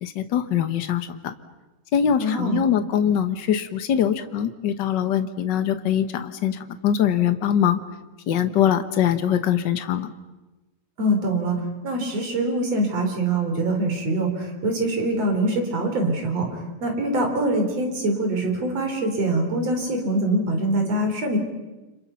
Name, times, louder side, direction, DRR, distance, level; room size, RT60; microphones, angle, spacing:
voice 1, 0.0-1.3 1.9-7.8 8.3-10.1, left 9 dB, 50° left, 10 dB, 1.4 m, -22 dB
voice 2, 2.2-2.6 11.0-11.6 11.8-21.4, right 1 dB, 55° right, 3 dB, 4.8 m, -24 dB
30.0 x 26.5 x 5.8 m, 1.1 s
omnidirectional pair, 3.3 m